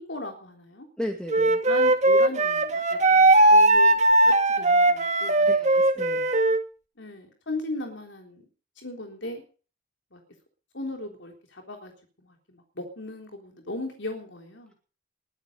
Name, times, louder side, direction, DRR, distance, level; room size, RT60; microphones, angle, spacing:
voice 1, 0.0-0.9 1.6-5.7 7.0-8.4 8.8-9.4 10.1-10.2 10.7-11.9 12.2-14.7, left 2 dB, 75° left, 3 dB, 3.6 m, -37 dB
voice 2, 1.0-1.6 5.4-6.3, equal, 5° left, 2 dB, 2.4 m, -35 dB
Wind instrument woodwind instrument, 1.3-6.6, right 2 dB, 35° right, 2.1 m, -19 dB
22.0 x 10.5 x 5.4 m, 0.38 s
head